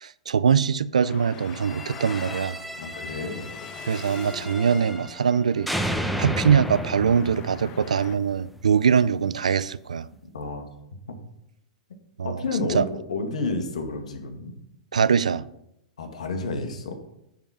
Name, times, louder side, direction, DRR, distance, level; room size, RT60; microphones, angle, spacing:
voice 1, 0.0-2.6 3.9-5.7 6.2-10.1 12.2-12.4 12.7-12.8 14.9-15.5, right 7 dB, 80° right, 0.4 m, -22 dB
Traffic noise roadway noise, 1.0-8.2, left 9 dB, 40° left, 1.0 m, -44 dB
sound 1, 1.5-5.3 5.7-8.7, equal, ahead, 1.0 m, -33 dB
voice 2, 2.8-3.5 10.3-10.6 12.2-14.5 16.0-16.9, left 3 dB, 75° left, 2.0 m, -30 dB
9.2 x 7.1 x 5.9 m
hypercardioid pair, 105°, 4 cm